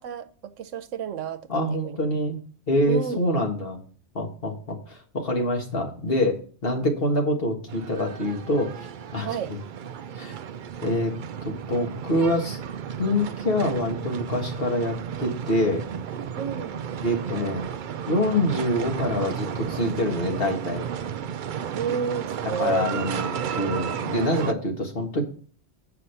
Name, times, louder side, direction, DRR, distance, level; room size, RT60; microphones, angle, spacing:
voice 1, 0.0-2.0 2.9-3.2 9.2-9.5 16.4-16.8 21.7-22.9, right 7 dB, 85° right, 1.1 m, -31 dB
voice 2, 1.5-2.4 2.7-3.8 4.2-8.7 9.1-9.6 10.2-10.3 10.8-11.1 11.4-12.6 13.0-15.8 17.0-17.7 18.1-20.8 22.6-25.2, left 1 dB, 50° left, 1.8 m, -25 dB
sound 1, 7.7-24.5, right 8 dB, 60° right, 0.5 m, -33 dB
8.0 x 5.7 x 5.6 m
omnidirectional pair, 1.3 m